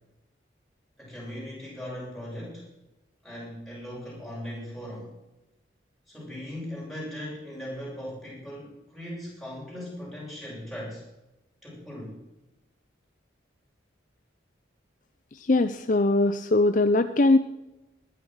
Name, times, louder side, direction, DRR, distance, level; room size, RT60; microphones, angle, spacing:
voice 1, 1.0-2.7 3.2-5.1 6.1-11.0 11.6-12.2, equal, ahead, -6 dB, 7.0 m, -38 dB
voice 2, 15.5-17.4, left 2 dB, 45° left, 11 dB, 0.5 m, -21 dB
20.0 x 10.5 x 6.3 m, 0.97 s
head